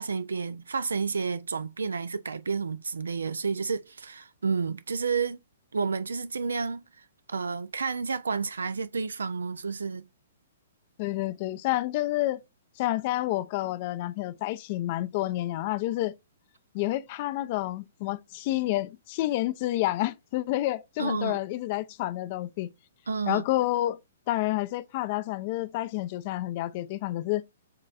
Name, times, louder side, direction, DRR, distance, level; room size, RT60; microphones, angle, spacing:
voice 1, 0.0-5.4 5.7-10.0 21.0-21.4 23.1-23.4, right 5 dB, 75° right, 0.3 m, -31 dB
voice 2, 11.0-12.4 12.8-16.1 16.7-22.7 23.3-24.0 24.3-27.4, left 16 dB, 40° left, 0.4 m, -29 dB
6.6 x 3.0 x 2.4 m
figure-of-eight pair, 120°, 0 cm